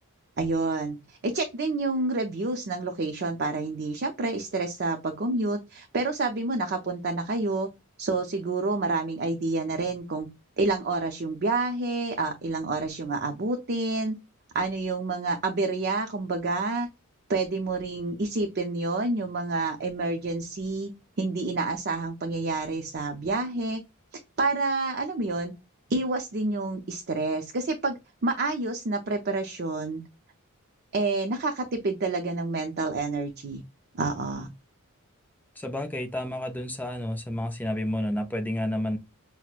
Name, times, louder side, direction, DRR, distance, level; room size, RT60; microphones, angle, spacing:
voice 1, 0.4-7.7 8.0-10.3 10.6-14.1 14.5-16.9 17.3-20.9 21.2-23.8 24.4-25.5 25.9-30.0 30.9-33.6 34.0-34.5, right 3 dB, 45° right, 0.5 m, -28 dB
voice 2, 35.6-39.0, left 1 dB, 10° left, 0.4 m, -30 dB
5.9 x 2.0 x 2.4 m
head